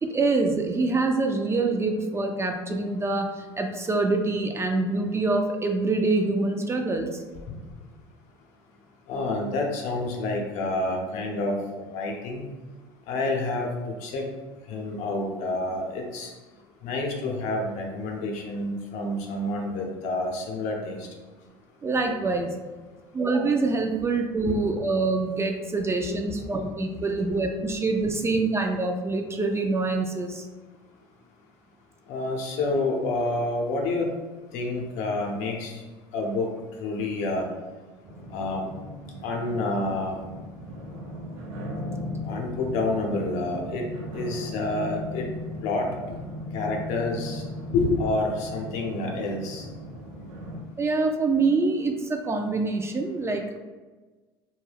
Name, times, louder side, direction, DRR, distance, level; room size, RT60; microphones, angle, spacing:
voice 1, 0.0-7.2 21.8-22.5 23.1-30.5 50.8-53.6, right 3 dB, 20° right, 3 dB, 0.3 m, -25 dB
voice 2, 9.1-11.6 11.9-12.5 13.1-14.2 14.7-16.3 16.8-21.1 24.4-24.5 32.1-34.1 34.5-35.8 36.1-36.5 36.8-37.5 38.3-38.7 39.2-40.2 42.2-43.8 44.1-45.3 45.6-45.9 46.5-47.4 47.7-49.6, left 2 dB, 65° left, 1 dB, 0.6 m, -28 dB
sound 1, 38.0-50.6, left 1 dB, 60° right, 0.7 m, -37 dB
2.2 x 2.2 x 3.3 m, 1.3 s
hypercardioid pair, 75°, 13 cm